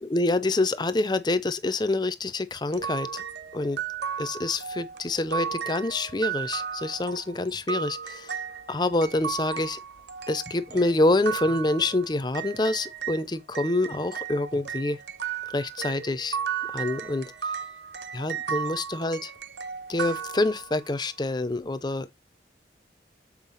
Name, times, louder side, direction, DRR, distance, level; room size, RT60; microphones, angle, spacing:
voice 1, 0.0-3.2 3.5-3.8 4.2-8.4 8.7-9.8 10.3-15.0 15.5-16.4 16.7-17.5 18.1-19.3 19.9-22.1, left 2 dB, 25° left, 0.6 m, -27 dB
sound 1, 2.7-13.2 13.5-20.9, right 7 dB, 75° right, 0.8 m, -35 dB
7.4 x 4.5 x 3.9 m
head